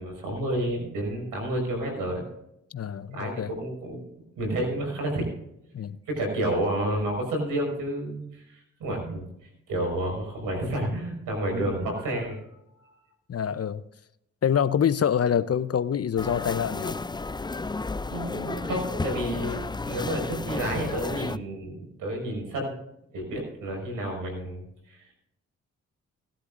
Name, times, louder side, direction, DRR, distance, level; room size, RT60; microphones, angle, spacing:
voice 1, 0.0-2.2 3.1-4.0 4.4-5.3 6.1-12.4 12.8-12.9 18.1-22.7 23.1-25.1, right 1 dB, 90° right, 1 dB, 5.5 m, -30 dB
voice 2, 2.7-3.5 5.7-6.0 13.3-13.8 14.4-17.0, left 8 dB, 50° left, 15 dB, 0.7 m, -26 dB
sound 1, 16.2-21.4, left 3 dB, 15° left, 0.5 m, -32 dB
18.0 x 11.5 x 2.6 m, 0.81 s
supercardioid pair, 50°, 32 cm